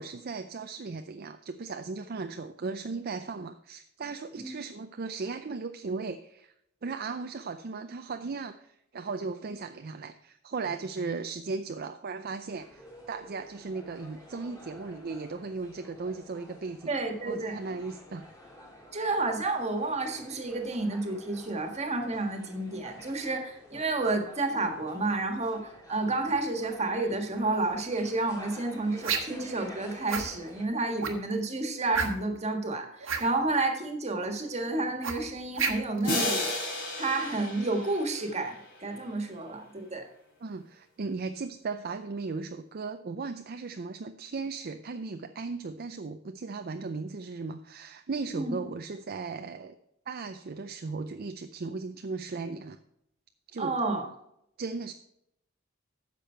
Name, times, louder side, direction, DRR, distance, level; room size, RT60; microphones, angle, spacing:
voice 1, 0.0-6.5 6.8-17.0 17.2-18.3 40.4-49.7 50.1-52.8 53.5-53.8 54.6-54.9, right 4 dB, 50° right, 8 dB, 0.5 m, -37 dB
sound 1, 12.5-30.7, left 1 dB, 15° left, 3.3 m, -50 dB
voice 2, 16.9-17.6 18.9-36.5 37.0-40.1 48.3-48.6 53.6-54.0, right 2 dB, 35° right, 4 dB, 1.6 m, -30 dB
sound 2, 29.0-29.4 30.1-30.3 31.0-31.3 31.9-32.4 33.0-33.3 35.0-36.0, right 6 dB, 85° right, 1.5 m, -30 dB
sound 3, 36.0-38.9, left 1 dB, 60° left, 4.0 m, -33 dB
10.0 x 6.9 x 4.5 m, 0.77 s
head